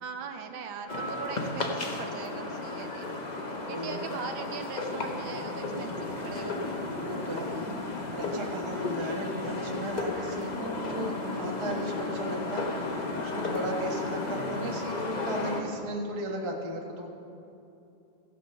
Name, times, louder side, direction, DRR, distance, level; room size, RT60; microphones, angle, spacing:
voice 1, 0.0-3.2 3.7-6.6 13.2-13.4, right 6 dB, 75° right, 6 dB, 1.5 m, -40 dB
sound 1, 0.9-15.6, left 2 dB, 55° left, 0.4 m, -33 dB
voice 2, 3.5-4.1 6.9-17.1, right 1 dB, 20° right, 0 dB, 0.8 m, -36 dB
16.0 x 5.4 x 6.5 m, 2.8 s
omnidirectional pair, 2.3 m